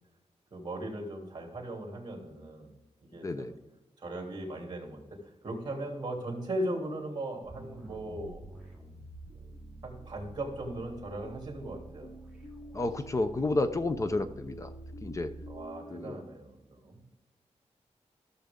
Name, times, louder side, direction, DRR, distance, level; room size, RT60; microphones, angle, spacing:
voice 1, 0.5-2.7 3.1-3.5 4.0-8.4 9.8-12.1 15.5-17.0, right 1 dB, 35° right, 1 dB, 2.9 m, -38 dB
voice 2, 3.2-3.5 12.7-14.7 15.0-15.3 15.9-16.2, left 2 dB, 25° left, 9 dB, 0.6 m, -31 dB
sound 1, 7.5-15.6, right 2 dB, 5° right, 2.3 m, -48 dB
sound 2, 11.2-16.3, equal, 70° left, 2.6 m, -50 dB
15.0 x 6.9 x 3.6 m, 1.0 s
wide cardioid pair, 150°, 12 cm